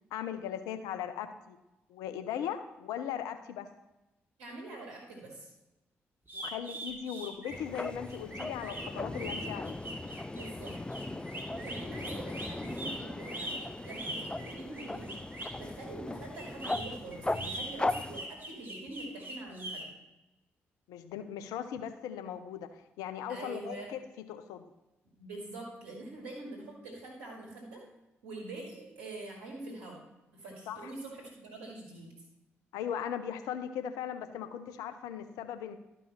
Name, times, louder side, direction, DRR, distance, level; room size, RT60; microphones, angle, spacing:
voice 1, 0.1-1.6 1.9-3.7 6.3-9.8 20.9-24.0 24.3-24.6 30.7-30.9 32.7-35.8, left 9 dB, 75° left, 10 dB, 0.7 m, -38 dB
voice 2, 4.4-5.5 10.2-10.8 11.5-15.1 15.6-19.8 23.3-23.9 25.2-27.8 28.2-30.0 30.3-32.2, right 2 dB, 80° right, -2 dB, 2.1 m, -44 dB
sound 1, 6.3-15.6 16.4-19.8, right 1 dB, 35° right, 2.7 m, -41 dB
sound 2, 7.5-18.2, left 2 dB, 15° left, 0.5 m, -38 dB
12.5 x 5.6 x 4.1 m, 0.99 s
hypercardioid pair, 40°, 6 cm